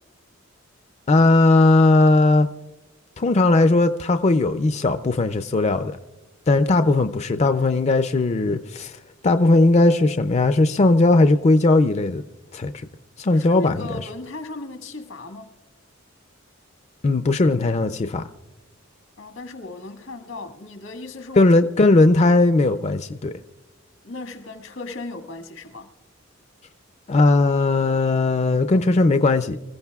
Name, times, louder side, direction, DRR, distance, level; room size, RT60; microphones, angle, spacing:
voice 1, 1.1-2.5 3.2-6.0 6.5-8.9 9.2-12.2 12.5-12.7 13.2-14.0 17.0-18.2 21.4-23.3 27.1-29.6, left 2 dB, 35° left, 0.4 m, -18 dB
voice 2, 13.3-15.5 19.2-21.6 21.8-21.9 24.0-25.9, left 2 dB, 90° left, 1.7 m, -36 dB
27.0 x 15.0 x 2.3 m
head